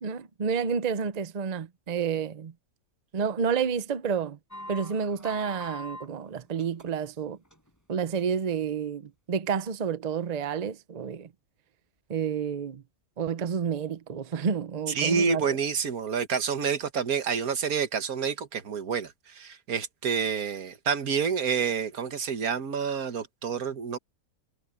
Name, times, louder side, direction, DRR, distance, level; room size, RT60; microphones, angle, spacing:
voice 1, 0.0-2.5 3.1-4.4 4.7-7.4 7.9-11.3 12.1-12.8 13.2-15.5, right 6 dB, 35° right, 0.7 m, -30 dB
sound 1, 4.5-6.1 6.4-7.1 7.5-7.7 8.2-8.3, left 1 dB, 10° left, 7.9 m, -42 dB
voice 2, 15.0-24.0, right 6 dB, 85° right, 1.8 m, -28 dB
omnidirectional pair, 1.5 m